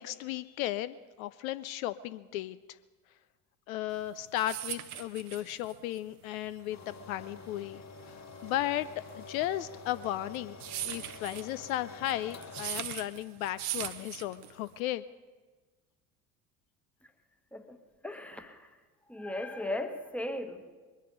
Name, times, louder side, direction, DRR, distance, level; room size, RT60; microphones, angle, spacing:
voice 1, 0.0-2.6 3.7-8.9 9.1-10.6 10.8-15.0, left 13 dB, 65° left, 14 dB, 0.5 m, -35 dB
sound 1, 4.0-14.8, right 12 dB, 75° right, 0.9 m, -40 dB
sound 2, 6.7-12.8, left 4 dB, 35° left, 1.2 m, -48 dB
voice 2, 18.0-18.7 19.1-20.7, left 1 dB, 5° left, 8 dB, 1.1 m, -37 dB
21.5 x 10.0 x 5.2 m, 1.3 s
figure-of-eight pair, 60°, 45 cm